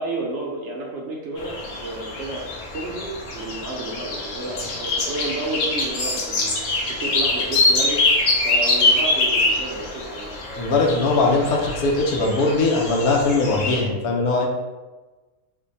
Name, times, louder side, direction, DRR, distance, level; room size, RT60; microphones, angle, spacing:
voice 1, 0.0-6.6 6.9-8.0 8.4-10.3, right 2 dB, 65° right, -1 dB, 0.7 m, -31 dB
sound 1, 1.4-13.8, left 2 dB, 65° left, 1.0 m, -24 dB
voice 2, 10.6-14.5, left 3 dB, 85° left, 0 dB, 1.2 m, -20 dB
3.4 x 2.2 x 3.9 m, 1.2 s
omnidirectional pair, 1.5 m